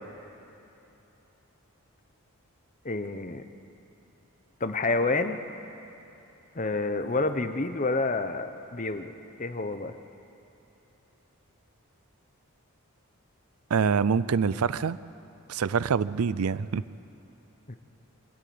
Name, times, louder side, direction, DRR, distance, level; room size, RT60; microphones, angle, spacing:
voice 1, 2.8-3.4 4.6-5.4 6.5-9.1 9.4-9.9 17.7-17.8, left 3 dB, 35° left, 8 dB, 0.9 m, -28 dB
voice 2, 13.7-15.0 15.5-16.8, right 6 dB, 80° right, 18 dB, 0.5 m, -25 dB
24.5 x 13.0 x 9.4 m, 2.9 s
head